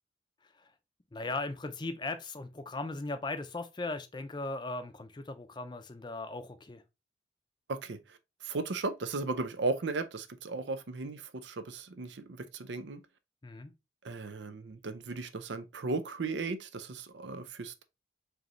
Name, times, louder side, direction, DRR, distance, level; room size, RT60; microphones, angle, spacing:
voice 1, 1.1-6.8 13.4-13.7, left 2 dB, 25° left, 0.5 m, -38 dB
voice 2, 7.7-13.0 14.0-17.8, right 3 dB, 85° right, 0.6 m, -36 dB
4.9 x 3.1 x 3.0 m
head